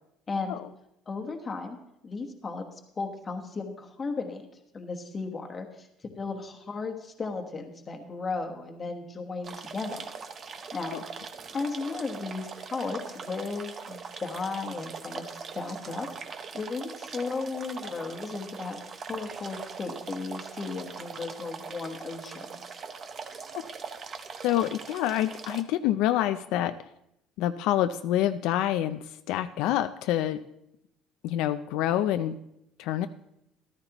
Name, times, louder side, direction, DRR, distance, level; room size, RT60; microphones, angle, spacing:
voice 1, 0.3-0.6 1.1-1.8 2.0-2.6 3.0-4.4 4.7-5.9 6.1-10.1 10.7-11.0 11.5-16.1 16.5-18.8 19.1-22.8, left 4 dB, 20° left, 4 dB, 1.2 m, -35 dB
sound 1, 9.4-25.6, right 5 dB, 30° right, 0.7 m, -41 dB
voice 2, 24.4-26.7 27.4-30.4 31.2-32.4 32.8-33.1, left 12 dB, 70° left, 10 dB, 0.4 m, -27 dB
13.5 x 13.5 x 3.0 m, 0.81 s
cardioid pair, 170°, 0 cm